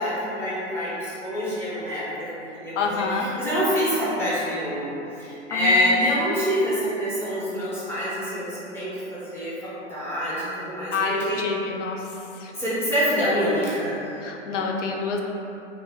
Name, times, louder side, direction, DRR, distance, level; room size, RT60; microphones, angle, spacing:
voice 1, 0.0-4.9 5.2-11.4 12.5-14.1, equal, 5° left, -10 dB, 0.6 m, -26 dB
voice 2, 2.8-3.3 5.5-6.0 10.9-12.0 12.4-12.5 14.2-15.2, left 4 dB, 80° left, 1 dB, 0.5 m, -27 dB
3.0 x 2.0 x 3.4 m, 3.0 s
hypercardioid pair, 125°, 36 cm